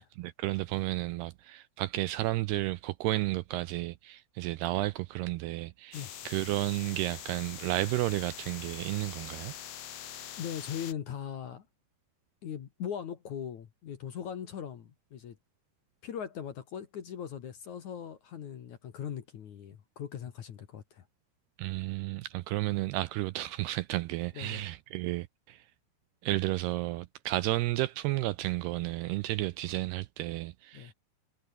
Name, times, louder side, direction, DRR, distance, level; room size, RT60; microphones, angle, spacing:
voice 1, 0.0-9.5 21.6-25.6 26.2-30.9, right 18 dB, 80° right, 2.4 m, -32 dB
sound 1, 5.9-10.9, left 10 dB, 80° left, 1.4 m, -44 dB
voice 2, 10.4-11.7 12.4-15.4 16.0-21.1 24.3-24.6 30.7-30.9, left 8 dB, 55° left, 2.5 m, -40 dB
omnidirectional pair, 5.2 m